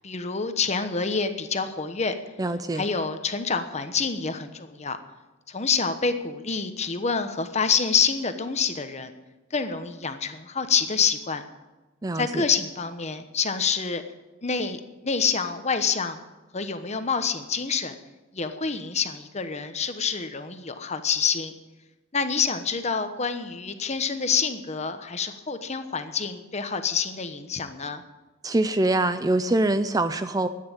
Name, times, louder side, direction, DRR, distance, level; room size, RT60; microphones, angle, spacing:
voice 1, 0.0-2.1 2.7-5.0 5.5-9.1 9.5-11.4 12.1-14.0 14.4-16.2 16.5-17.9 18.3-21.5 22.1-28.0, left 5 dB, 35° left, 9 dB, 1.1 m, -27 dB
voice 2, 2.4-2.8 12.0-12.5 28.4-30.5, right 2 dB, 20° right, 11 dB, 0.5 m, -24 dB
13.0 x 9.5 x 8.6 m, 1.1 s
head